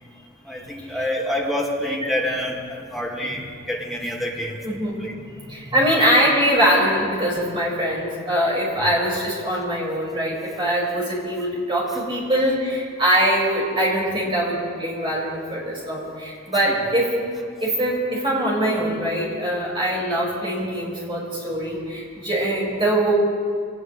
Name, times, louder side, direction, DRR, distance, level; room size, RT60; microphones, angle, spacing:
voice 1, 0.5-4.6 5.0-5.1 9.1-9.2 16.7-16.9, left 1 dB, ahead, -3 dB, 2.0 m, -27 dB
voice 2, 4.6-5.0 5.3-17.2 17.6-23.1, equal, 25° right, -5 dB, 5.2 m, -22 dB
24.0 x 18.5 x 3.2 m, 2.1 s
head